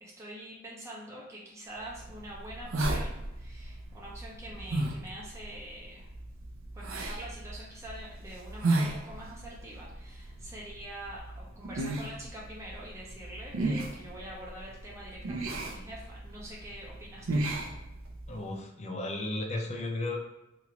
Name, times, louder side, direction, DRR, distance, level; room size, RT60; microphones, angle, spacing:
voice 1, 0.0-6.1 6.8-17.5, right 1 dB, 15° right, -5 dB, 0.6 m, -45 dB
sound 1, 1.8-18.4, right 2 dB, 70° right, 0.5 m, -35 dB
voice 2, 18.3-20.2, left 2 dB, 30° left, 3 dB, 0.4 m, -34 dB
3.0 x 2.5 x 2.9 m, 0.96 s
head